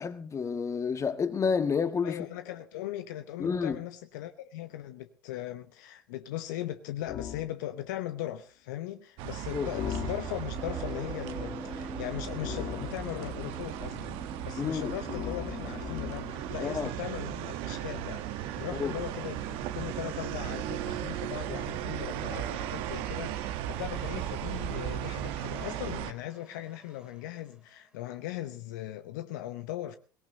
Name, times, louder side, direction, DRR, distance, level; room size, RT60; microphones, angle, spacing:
voice 1, 0.0-2.3 3.4-3.8 9.5-9.7 14.6-14.9 16.6-16.9 18.8-18.9, left 6 dB, 30° left, 1.6 m, -29 dB
voice 2, 2.0-30.0, left 13 dB, 70° left, 0.9 m, -39 dB
sound 1, 7.1-7.5 9.7-10.7 12.4-13.5 15.0-16.4, left 10 dB, 45° left, 1.4 m, -38 dB
sound 2, 9.2-26.1, right 12 dB, 60° right, 1.2 m, -36 dB
sound 3, 10.5-26.6, right 1 dB, 10° right, 2.3 m, -47 dB
23.0 x 18.0 x 2.8 m
hypercardioid pair, 70°, 11 cm